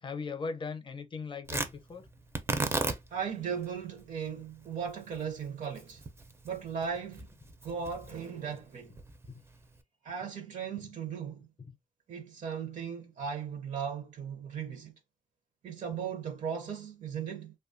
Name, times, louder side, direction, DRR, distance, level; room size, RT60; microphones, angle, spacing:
voice 1, 0.0-2.1, left 4 dB, 40° left, 0.6 m, -38 dB
Tearing, 1.4-9.8, right 3 dB, 20° right, 0.4 m, -38 dB
voice 2, 3.1-6.0 6.4-7.3 7.6-8.9 10.0-11.5 12.1-14.9 15.6-17.5, right 7 dB, 65° right, 0.6 m, -37 dB
2.9 x 2.2 x 2.5 m
wide cardioid pair, 140°, 13 cm